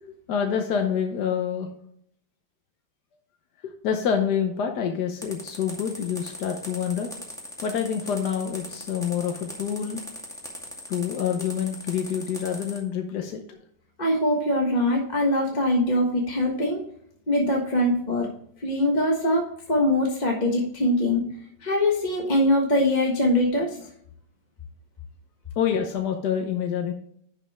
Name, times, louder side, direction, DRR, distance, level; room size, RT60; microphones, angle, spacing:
voice 1, 0.0-1.7 3.6-7.1 7.6-10.0 10.9-13.6 25.6-26.9, left 8 dB, 70° left, 4 dB, 1.4 m, -27 dB
sound 1, 5.2-12.8, left 1 dB, ahead, 2.1 m, -39 dB
voice 2, 14.0-16.8 17.3-18.3 18.6-21.2 21.6-23.9, left 1 dB, 25° left, -1 dB, 1.3 m, -23 dB
10.5 x 5.4 x 3.5 m, 0.67 s
omnidirectional pair, 1.9 m